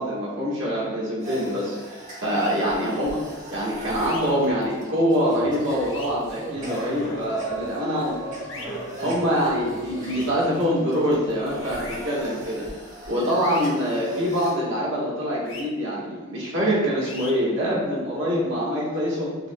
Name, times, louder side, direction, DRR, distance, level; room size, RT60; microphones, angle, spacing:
voice 1, 0.0-3.2 3.5-8.1 9.0-12.7 13.1-19.3, equal, 60° right, -6 dB, 1.4 m, -25 dB
sound 1, 1.2-14.5, equal, 35° right, 1.2 m, -38 dB
sound 2, 2.3-2.5 4.0-4.2 5.8-6.1 8.5-8.7 10.1-10.3 11.8-12.0 13.4-13.7 15.4-15.6 17.0-17.3, left 3 dB, 65° left, 0.7 m, -39 dB
6.2 x 3.0 x 2.2 m, 1.2 s
head